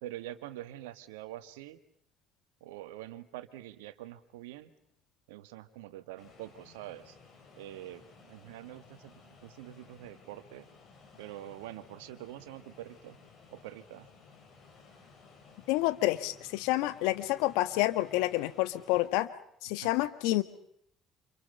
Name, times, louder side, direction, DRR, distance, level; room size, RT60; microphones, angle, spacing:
voice 1, 0.0-1.8 2.6-4.7 5.3-7.2 7.5-10.7 11.2-13.2 13.5-14.1 19.8-19.9, right 14 dB, 80° right, 11 dB, 1.6 m, -45 dB
sound 1, 6.2-19.1, left 4 dB, 50° left, 8.0 m, -57 dB
voice 2, 15.7-19.3 19.6-20.4, left 17 dB, 75° left, 12 dB, 1.4 m, -28 dB
29.5 x 28.0 x 5.6 m, 0.72 s
hypercardioid pair, 55°, 0 cm